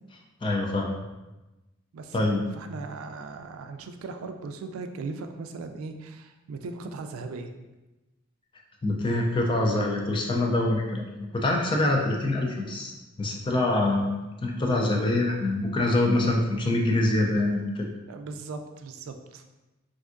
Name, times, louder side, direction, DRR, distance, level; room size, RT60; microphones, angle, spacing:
voice 1, 0.4-1.0 2.1-2.4 8.8-17.9, left 2 dB, 25° left, 0 dB, 0.3 m, -25 dB
voice 2, 1.9-7.5 18.1-19.4, right 4 dB, 90° right, 7 dB, 0.3 m, -38 dB
3.4 x 2.6 x 2.5 m, 1.1 s
head